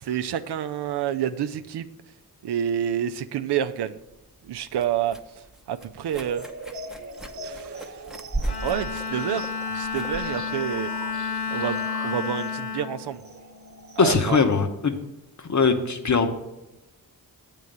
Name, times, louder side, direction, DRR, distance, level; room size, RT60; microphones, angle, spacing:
voice 1, 0.0-1.9 2.4-4.0 4.4-5.2 5.7-6.5 7.4-8.0 8.6-10.9 11.5-13.2 14.0-14.4, right 9 dB, 85° right, 10 dB, 0.5 m, -28 dB
sound 1, 4.0-11.7, right 2 dB, ahead, 0.7 m, -37 dB
sound 2, 6.2-14.3, right 2 dB, 45° right, 1.0 m, -41 dB
Bowed string instrument, 8.4-14.0, left 5 dB, 80° left, 1.9 m, -31 dB
voice 2, 14.0-15.0 15.4-16.3, left 4 dB, 45° left, 7 dB, 0.9 m, -21 dB
8.3 x 3.7 x 6.7 m, 0.96 s
cardioid pair, 70°, 39 cm